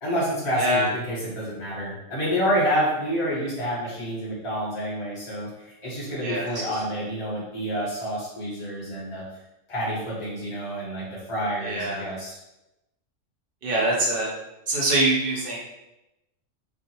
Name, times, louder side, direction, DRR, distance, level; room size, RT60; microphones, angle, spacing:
voice 1, 0.0-9.2 9.7-12.4, equal, 25° left, -8 dB, 1.1 m, -28 dB
voice 2, 11.6-12.1 13.6-14.3 14.7-15.6, right 1 dB, 50° right, -3 dB, 0.9 m, -24 dB
2.4 x 2.3 x 2.9 m, 0.92 s
omnidirectional pair, 1.3 m